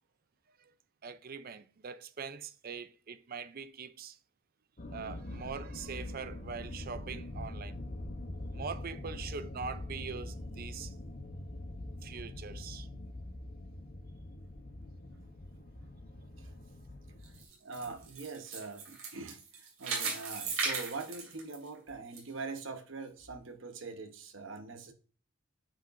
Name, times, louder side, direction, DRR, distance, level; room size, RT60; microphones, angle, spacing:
voice 1, 1.0-4.2 4.9-7.8 8.5-10.9 12.0-12.9, right 5 dB, 50° right, 0.5 m, -43 dB
sound 1, 4.8-17.5, left 1 dB, 45° left, 0.9 m, -43 dB
sound 2, 17.2-22.2 22.6-22.7 23.3-23.4, right 4 dB, 85° right, 2.6 m, -37 dB
voice 2, 17.6-24.9, right 4 dB, 65° right, 1.0 m, -43 dB
8.9 x 5.1 x 2.6 m
head